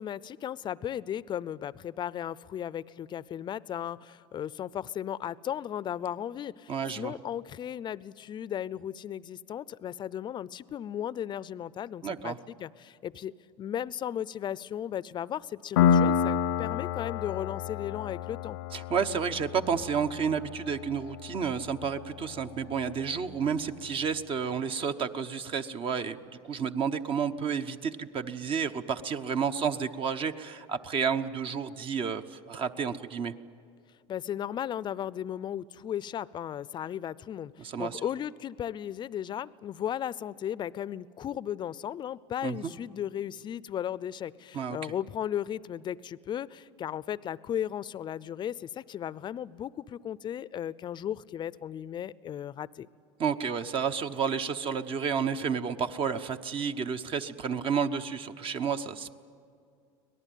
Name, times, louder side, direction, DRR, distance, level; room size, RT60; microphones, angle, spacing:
voice 1, 0.0-18.6 34.1-52.9, left 10 dB, 35° left, 20 dB, 0.6 m, -36 dB
voice 2, 6.7-7.1 12.0-12.4 18.7-26.2 26.4-33.3 37.6-38.0 42.4-42.7 44.5-44.8 53.2-59.2, right 6 dB, 40° right, 9 dB, 1.0 m, -31 dB
Piano, 15.8-23.1, left 8 dB, 80° left, 0.9 m, -30 dB
24.5 x 18.5 x 9.2 m, 2.3 s
hypercardioid pair, 95°, 14 cm